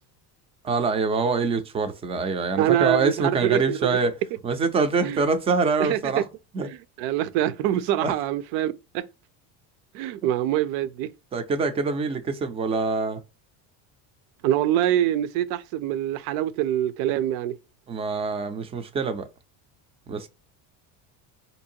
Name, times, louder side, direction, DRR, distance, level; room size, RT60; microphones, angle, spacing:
voice 1, 0.6-4.1 4.4-6.2 6.5-6.7 8.0-8.1 11.3-13.2 17.9-19.3 20.1-20.3, right 4 dB, 15° right, 0.3 m, -25 dB
voice 2, 2.6-4.0 5.0-5.2 5.8-6.2 6.6-9.1 9.9-11.1 14.4-17.6, right 12 dB, 65° right, 0.6 m, -25 dB
4.4 x 2.7 x 2.6 m
cardioid pair, 145°, 41 cm